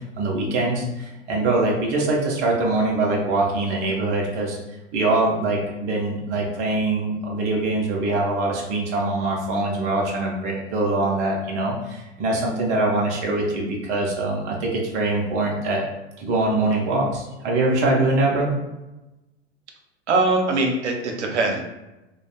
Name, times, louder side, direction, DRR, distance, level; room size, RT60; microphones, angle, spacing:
voice 1, 0.2-4.6 4.9-15.8 16.2-18.5, right 2 dB, 20° right, -2 dB, 0.3 m, -23 dB
voice 2, 20.1-21.6, right 3 dB, 70° right, 2 dB, 0.6 m, -21 dB
2.4 x 2.0 x 2.7 m, 1.0 s
figure-of-eight pair, 95°, 36 cm